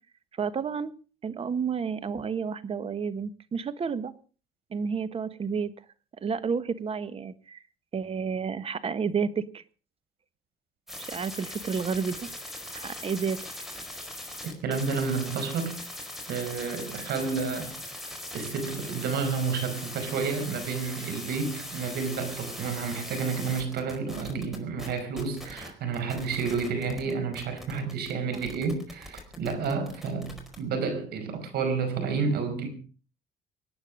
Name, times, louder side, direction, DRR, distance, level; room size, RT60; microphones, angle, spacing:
voice 1, 0.4-0.9 1.2-4.1 4.7-5.7 6.2-7.6 7.9-9.6 11.0-12.3 12.7-13.4 28.3-28.4, right 6 dB, 35° right, 14 dB, 1.3 m, -30 dB
sound 1, 10.9-25.7 25.9-30.6, left 1 dB, ahead, 4.7 m, -40 dB
voice 2, 14.6-15.8 16.3-17.8 18.3-32.7, right 5 dB, 70° right, 8 dB, 5.1 m, -30 dB
25.0 x 9.4 x 5.2 m, 0.38 s
cardioid pair, 110°, 17 cm